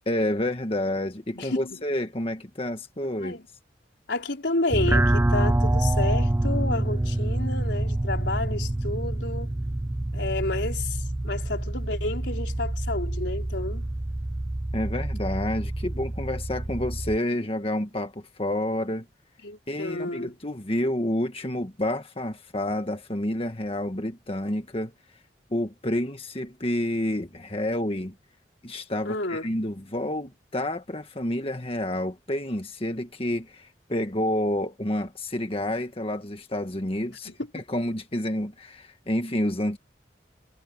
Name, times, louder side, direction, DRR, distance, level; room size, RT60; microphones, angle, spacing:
voice 1, 0.0-3.4 14.7-19.0 19.7-24.9 25.5-28.1 28.6-39.8, left 1 dB, 30° left, 1.6 m, -29 dB
voice 2, 1.4-1.8 3.2-3.4 4.1-9.5 10.1-13.9 19.4-20.4 29.0-29.5 37.2-37.4, left 2 dB, 85° left, 4.1 m, -31 dB
sound 1, 4.7-17.2, right 1 dB, 15° right, 0.4 m, -26 dB
head